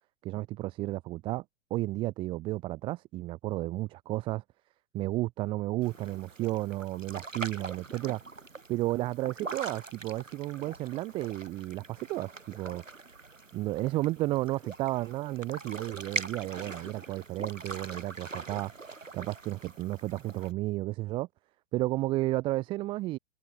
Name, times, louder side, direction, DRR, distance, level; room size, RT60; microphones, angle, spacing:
voice 1, 0.2-1.4 1.7-4.4 4.9-8.2 8.7-12.8 13.5-18.7 19.1-21.3 21.7-23.2, right 17 dB, 15° right, 0.5 m, -32 dB
sound 1, 5.8-20.5, right 3 dB, 90° right, 1.1 m, -43 dB
figure-of-eight pair, 105°, 38 cm